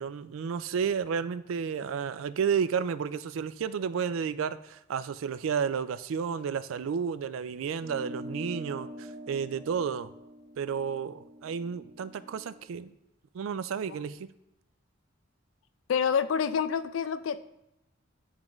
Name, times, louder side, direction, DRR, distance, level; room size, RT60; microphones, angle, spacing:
voice 1, 0.0-10.1 10.6-12.9 13.3-14.2, right 6 dB, 80° right, 14 dB, 0.3 m, -32 dB
sound 1, 7.8-12.6, equal, 5° right, 0.8 m, -44 dB
voice 2, 15.9-17.4, left 7 dB, 75° left, 13 dB, 0.4 m, -27 dB
9.7 x 3.6 x 3.1 m, 0.84 s
head